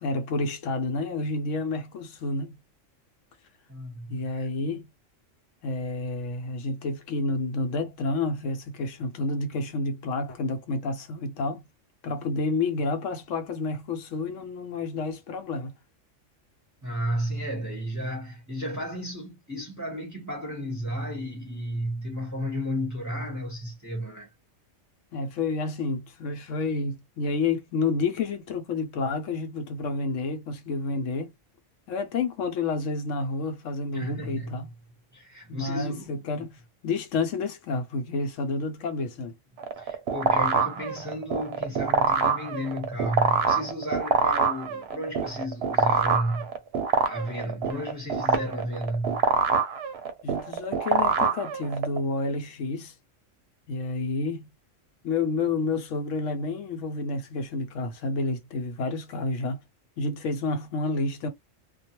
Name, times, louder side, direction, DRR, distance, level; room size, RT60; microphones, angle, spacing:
voice 1, 0.0-2.5 4.1-4.9 5.6-11.6 12.0-15.7 25.1-31.3 31.9-34.7 35.5-39.3 50.2-52.9 53.7-54.5 55.0-59.6 60.0-61.3, left 3 dB, 75° left, 1.0 m, -29 dB
voice 2, 3.7-4.5 16.8-24.3 33.9-34.6 35.1-36.1 39.8-46.5 47.0-49.2, equal, 15° right, 0.8 m, -33 dB
sound 1, 39.6-52.0, right 5 dB, 60° right, 0.8 m, -25 dB
2.4 x 2.2 x 2.9 m
omnidirectional pair, 1.3 m